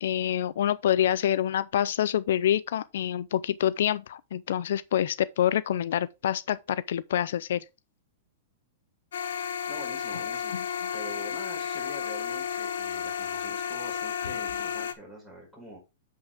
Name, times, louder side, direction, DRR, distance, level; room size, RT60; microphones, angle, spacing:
voice 1, 0.0-7.6, left 10 dB, 70° left, 0.4 m, -26 dB
sound 1, 9.1-14.9, left 8 dB, 90° left, 1.2 m, -32 dB
voice 2, 9.7-10.6 10.9-15.8, right 1 dB, 5° left, 4.9 m, -45 dB
8.2 x 5.5 x 3.5 m
hypercardioid pair, 155°, 0 cm